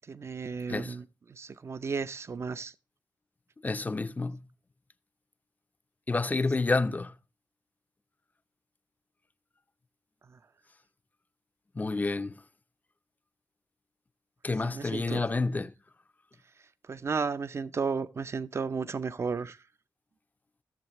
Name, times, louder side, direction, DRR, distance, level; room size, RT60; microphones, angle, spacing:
voice 1, 0.1-2.7 10.3-10.4 14.6-15.2 16.9-19.6, right 5 dB, 40° right, 0.6 m, -34 dB
voice 2, 3.6-4.4 6.1-7.1 11.7-12.4 14.4-15.7, left 3 dB, 25° left, 0.5 m, -29 dB
15.5 x 7.1 x 2.9 m
cardioid pair, 100°, 7 cm